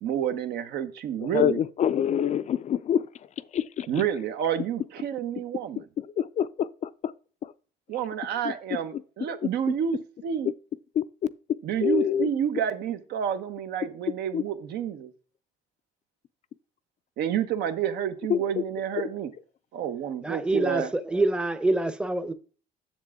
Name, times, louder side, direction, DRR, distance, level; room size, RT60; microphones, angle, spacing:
voice 1, 0.0-1.6 3.9-5.9 7.9-10.5 11.6-15.1 17.2-19.3 19.7-20.9, right 9 dB, 75° right, 1.0 m, -29 dB
voice 2, 1.2-3.0 3.5-3.9 6.2-6.9 7.4-7.5 8.4-8.5 11.0-11.1 11.8-12.3 14.3-14.4 18.3-18.4, left 9 dB, 45° left, 0.4 m, -25 dB
voice 3, 20.2-22.3, right 2 dB, 5° right, 0.7 m, -26 dB
7.3 x 7.3 x 3.6 m
cardioid pair, 110°, 17 cm